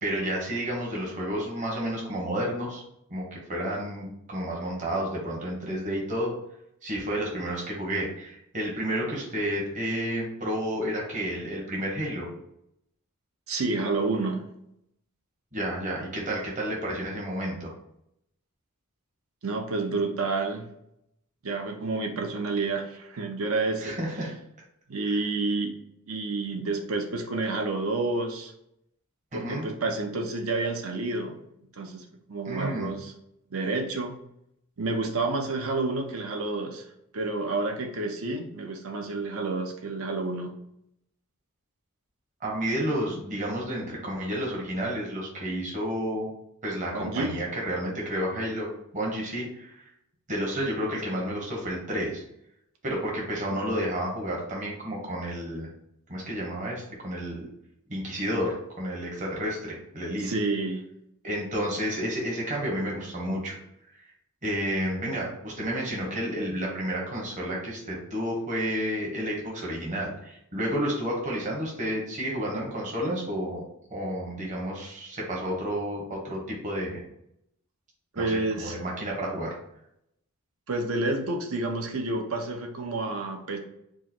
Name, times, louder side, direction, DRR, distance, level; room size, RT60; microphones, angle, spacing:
voice 1, 0.0-2.8 3.1-6.3 6.8-12.3 15.5-17.7 23.8-24.3 25.0-25.2 29.3-29.7 32.5-32.9 42.4-46.3 46.6-49.8 50.3-52.2 52.8-55.7 56.1-57.5 57.9-60.3 61.2-63.5 63.9-64.1 64.4-73.6 73.9-77.0 78.1-79.5, equal, 35° right, -3 dB, 1.1 m, -31 dB
voice 2, 13.5-14.5 19.4-20.6 21.4-24.0 24.9-25.7 26.1-28.5 29.3-31.4 31.7-33.1 33.5-34.1 34.8-36.8 37.1-40.5 46.9-47.4 60.2-60.8 78.1-78.8 80.7-83.6, right 3 dB, 65° right, 4 dB, 0.7 m, -29 dB
4.6 x 2.0 x 4.3 m, 0.77 s
head